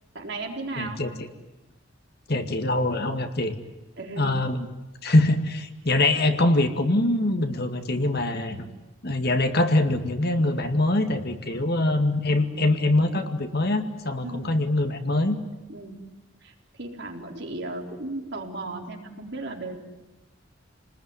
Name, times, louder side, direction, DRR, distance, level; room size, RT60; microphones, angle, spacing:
voice 1, 0.1-1.0 4.0-4.4 8.5-8.7 11.5-11.8 14.2-14.5 15.7-16.0 16.4-19.8, right 2 dB, 60° right, 2 dB, 4.2 m, -36 dB
voice 2, 0.8-1.1 2.3-3.5 4.2-4.7 5.0-8.6 9.0-15.4, left 2 dB, 50° left, 6 dB, 2.1 m, -23 dB
29.5 x 20.0 x 9.9 m, 1.1 s
head